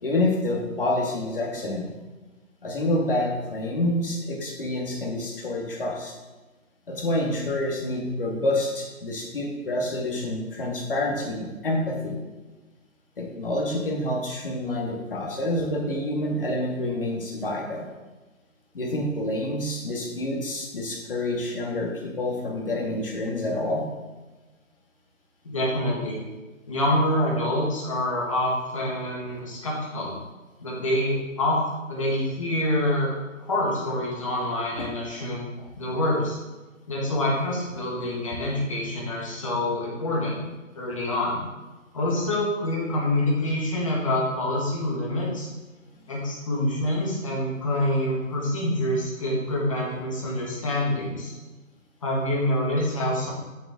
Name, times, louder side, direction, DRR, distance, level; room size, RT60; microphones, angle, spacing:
voice 1, 0.0-1.9 2.6-6.1 6.9-12.2 13.2-17.9 18.7-23.9 34.8-34.9 35.6-35.7, left 1 dB, 40° left, -1 dB, 2.2 m, -28 dB
voice 2, 25.4-26.2 26.7-30.1 30.6-31.6 31.9-33.1 33.5-35.5 35.8-36.4 36.9-40.4 40.8-41.4 41.9-45.5 46.1-51.3 52.0-53.3, left 1 dB, 25° left, -4 dB, 1.9 m, -26 dB
8.9 x 8.8 x 3.8 m, 1.2 s
hypercardioid pair, 175°, 41 cm